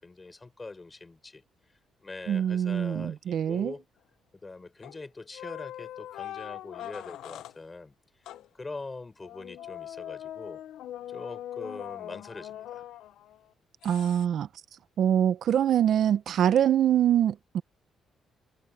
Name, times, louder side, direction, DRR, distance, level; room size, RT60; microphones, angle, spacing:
voice 1, 0.0-1.4 2.0-3.8 4.3-7.9 8.2-8.3 8.5-10.6 11.1-12.8, left 3 dB, 25° left, 6.6 m, -43 dB
voice 2, 2.3-3.7 13.8-14.5 15.0-17.6, right 10 dB, 65° right, 0.7 m, -24 dB
sound 1, 4.8-5.1 5.3-7.6 8.3-8.5 9.2-13.4 13.8-14.3, left 12 dB, 80° left, 0.7 m, -41 dB
cardioid pair, 90°, 0 cm